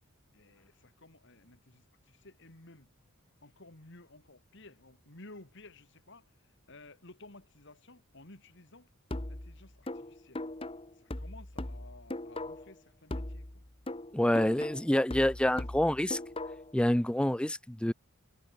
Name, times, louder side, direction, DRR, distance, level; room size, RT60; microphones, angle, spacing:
voice 1, 0.3-2.9 3.4-8.9 9.3-10.4 10.9-13.6 15.2-16.0, left 2 dB, 60° left, 3.4 m, -55 dB
sound 1, 9.1-12.8 13.1-16.8, left 1 dB, 25° left, 1.4 m, -40 dB
voice 2, 14.1-16.2 16.7-17.9, left 1 dB, 5° left, 0.5 m, -27 dB
head